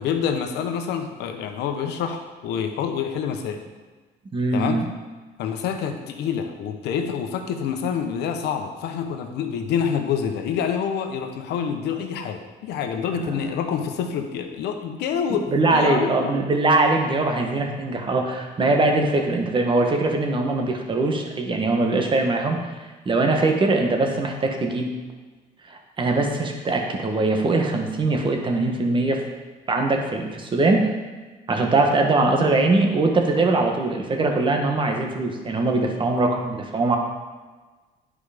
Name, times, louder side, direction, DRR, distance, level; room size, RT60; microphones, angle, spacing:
voice 1, 0.0-3.6 4.5-4.8 5.4-16.3, left 7 dB, 80° left, 5 dB, 1.0 m, -27 dB
voice 2, 4.3-4.9 13.2-13.5 15.3-24.9 25.7-29.2 29.7-30.9 31.5-37.0, right 2 dB, 30° right, 2 dB, 1.4 m, -22 dB
10.5 x 5.0 x 5.1 m, 1.3 s
cardioid pair, 110°, 17 cm